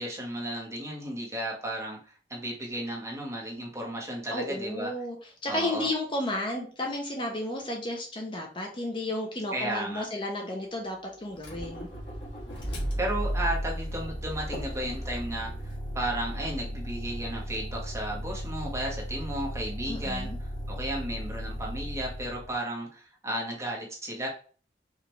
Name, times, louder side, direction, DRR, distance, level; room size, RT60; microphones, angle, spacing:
voice 1, 0.0-2.0 2.3-4.9 5.5-5.9 9.5-10.0 13.0-20.3 20.7-24.3, right 1 dB, 15° right, -2 dB, 1.2 m, -34 dB
voice 2, 4.3-5.2 5.4-11.9 19.9-20.4, left 1 dB, 30° left, 1 dB, 0.7 m, -32 dB
Motor vehicle (road), 11.3-22.5, equal, 80° left, 1.7 m, -35 dB
4.9 x 2.5 x 3.1 m, 0.40 s
head